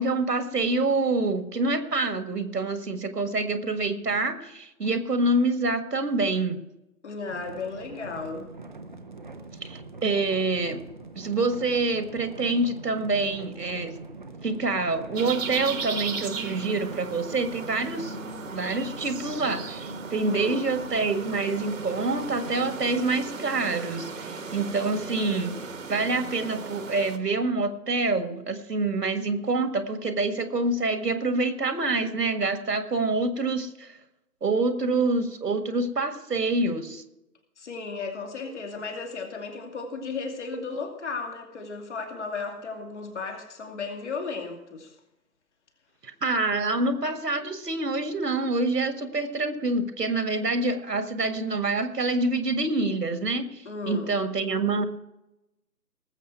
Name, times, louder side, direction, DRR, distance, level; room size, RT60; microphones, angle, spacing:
voice 1, 0.0-6.6 9.6-10.8 11.1-13.9 14.4-18.2 18.5-25.6 25.9-34.0 34.4-37.0 46.0-54.9, right 3 dB, 70° right, 8 dB, 1.8 m, -26 dB
voice 2, 7.0-8.5 20.2-20.6 37.6-44.9 53.6-54.1, left 4 dB, 45° left, 3 dB, 2.6 m, -35 dB
sound 1, 7.3-22.9, right 3 dB, 30° right, 0.7 m, -43 dB
sound 2, 15.1-27.2, right 4 dB, 50° right, 1.4 m, -36 dB
19.0 x 7.9 x 4.6 m, 0.90 s
figure-of-eight pair, 145°, 50 cm